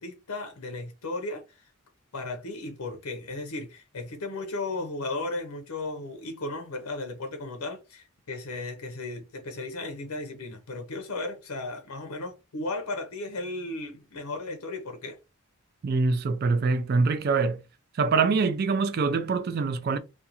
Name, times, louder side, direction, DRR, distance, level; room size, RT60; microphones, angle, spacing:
voice 1, 0.0-1.7 2.1-15.2, left 2 dB, 90° left, 0.6 m, -35 dB
voice 2, 15.8-17.6 18.0-20.0, right 4 dB, 45° right, 0.3 m, -24 dB
2.4 x 2.3 x 2.8 m
head